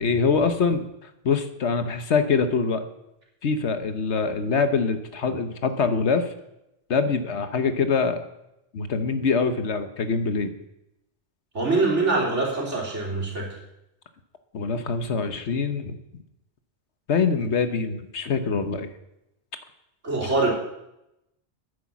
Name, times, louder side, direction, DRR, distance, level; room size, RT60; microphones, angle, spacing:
voice 1, 0.0-2.8 3.4-6.3 6.9-8.2 8.7-10.5 14.5-16.0 17.1-18.9 20.2-20.3, left 5 dB, 70° left, 9 dB, 1.3 m, -24 dB
voice 2, 11.5-13.5 20.0-20.5, right 3 dB, 80° right, -2 dB, 3.8 m, -24 dB
10.5 x 10.0 x 7.3 m, 0.86 s
omnidirectional pair, 1.2 m